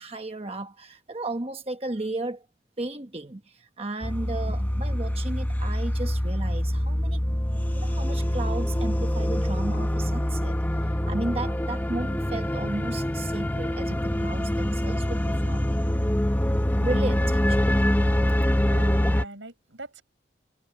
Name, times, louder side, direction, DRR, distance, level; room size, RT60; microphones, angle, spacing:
voice 1, 0.0-2.4 2.8-7.2 7.8-15.8 16.8-18.0, right 2 dB, 30° right, 1.1 m, -34 dB
sound 1, 4.0-19.2, equal, 10° left, 0.7 m, -25 dB
voice 2, 18.7-20.0, right 2 dB, 85° right, 6.4 m, -43 dB
head